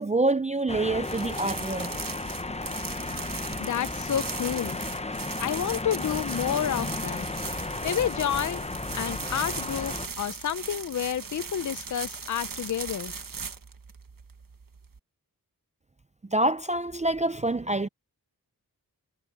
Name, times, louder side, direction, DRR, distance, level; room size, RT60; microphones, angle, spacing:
voice 1, 0.0-1.9 16.3-17.9, right 2 dB, 20° right, 0.5 m, -26 dB
sound 1, 0.7-10.1, left 2 dB, 20° left, 0.7 m, -34 dB
sound 2, 1.0-15.0, right 5 dB, 65° right, 1.5 m, -38 dB
voice 2, 3.6-4.8 5.4-7.3 7.8-8.7 8.9-13.1, left 9 dB, 55° left, 0.5 m, -30 dB
wide cardioid pair, 60°, 36 cm